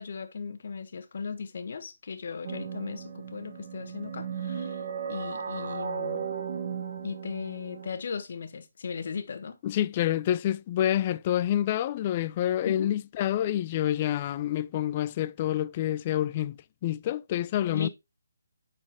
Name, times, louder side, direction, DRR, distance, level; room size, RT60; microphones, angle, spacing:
voice 1, 0.0-4.8 5.1-6.3 7.0-9.6 12.6-12.9 17.6-17.9, left 5 dB, 50° left, 1.1 m, -37 dB
sound 1, 2.4-7.9, right 7 dB, 50° right, 1.4 m, -36 dB
voice 2, 9.6-17.9, left 12 dB, 25° left, 0.3 m, -28 dB
9.3 x 4.3 x 3.5 m
hypercardioid pair, 160°, 0 cm